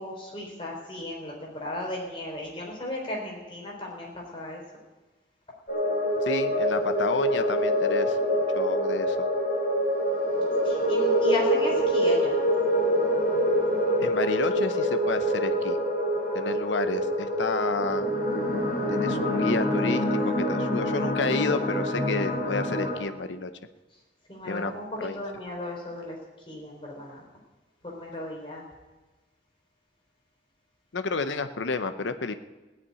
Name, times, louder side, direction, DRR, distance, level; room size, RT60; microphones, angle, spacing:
voice 1, 0.0-4.6 10.6-12.4 24.3-26.2 26.5-27.2 27.8-28.7, left 1 dB, 30° left, -2 dB, 3.7 m, -35 dB
sound 1, 5.7-23.0, equal, 45° left, 4.5 m, -25 dB
voice 2, 6.2-9.3 14.0-15.8 16.3-18.1 18.9-23.5 24.5-24.7 25.0-25.1 30.9-32.3, left 4 dB, 85° left, 10 dB, 0.8 m, -31 dB
17.0 x 6.0 x 9.6 m, 1.2 s
head